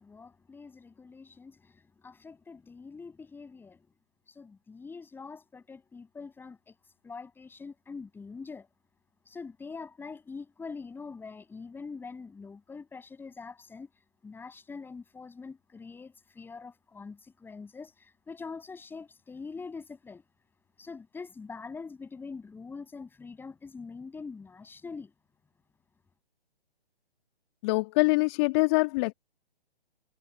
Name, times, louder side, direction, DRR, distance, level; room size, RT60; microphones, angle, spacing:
voice 1, 0.0-3.9 4.3-6.8 7.0-8.7 9.3-13.9 14.2-20.2 20.8-25.1, left 4 dB, 5° left, 6.8 m, -44 dB
voice 2, 27.6-29.1, left 27 dB, 25° left, 1.7 m, -24 dB
figure-of-eight pair, 130°, 30 cm